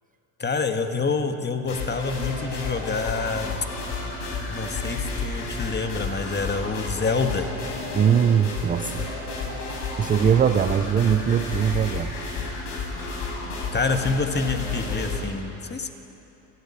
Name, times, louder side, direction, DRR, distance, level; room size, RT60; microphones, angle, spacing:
voice 1, 0.4-3.6 4.5-7.5 13.7-15.9, left 4 dB, 20° left, 6 dB, 1.6 m, -27 dB
sound 1, 1.7-15.2, left 3 dB, 75° left, 6.7 m, -31 dB
voice 2, 7.9-9.1 9.6-12.2, right 8 dB, 20° right, 10 dB, 0.4 m, -21 dB
29.5 x 12.0 x 8.7 m, 3.0 s
supercardioid pair, 105°, 50 cm